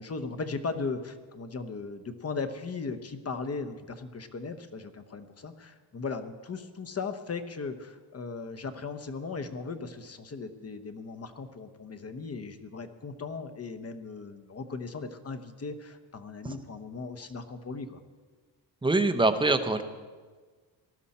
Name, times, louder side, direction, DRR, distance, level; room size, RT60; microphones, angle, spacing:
voice 1, 0.0-18.0, left 4 dB, 30° left, 9 dB, 1.0 m, -37 dB
voice 2, 18.8-19.8, right 2 dB, 10° right, 8 dB, 0.8 m, -24 dB
18.5 x 12.5 x 4.3 m, 1.4 s
cardioid pair, 125°, 45 cm